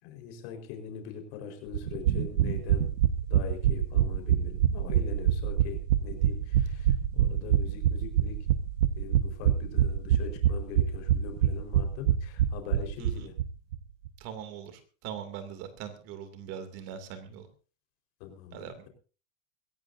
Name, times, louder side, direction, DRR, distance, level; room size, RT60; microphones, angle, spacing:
voice 1, 0.0-2.9 3.3-8.4 9.0-13.3 18.2-18.9, left 8 dB, 50° left, 4 dB, 4.6 m, -42 dB
sound 1, 1.7-13.5 13.7-13.8 14.1-14.2, right 10 dB, 80° right, 1.3 m, -25 dB
voice 2, 13.0-13.3 14.2-17.5 18.5-18.9, right 8 dB, 40° right, 9 dB, 2.7 m, -41 dB
23.0 x 15.5 x 2.7 m, 0.36 s
supercardioid pair, 160°, 38 cm